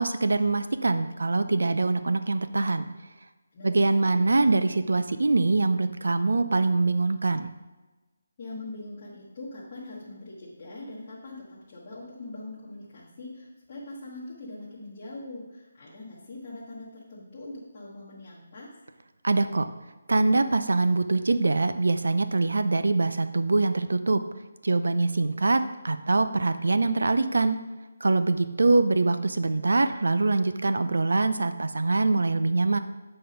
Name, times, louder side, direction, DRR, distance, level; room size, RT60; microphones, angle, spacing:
voice 1, 0.0-2.9 3.6-7.5 19.2-19.7 20.1-24.2 24.6-27.6 28.0-32.8, right 3 dB, 75° right, 10 dB, 0.5 m, -24 dB
voice 2, 3.5-4.2 8.4-18.7, left 2 dB, 20° left, -9 dB, 1.1 m, -42 dB
7.7 x 4.2 x 5.1 m, 1.2 s
hypercardioid pair, 180°, 0 cm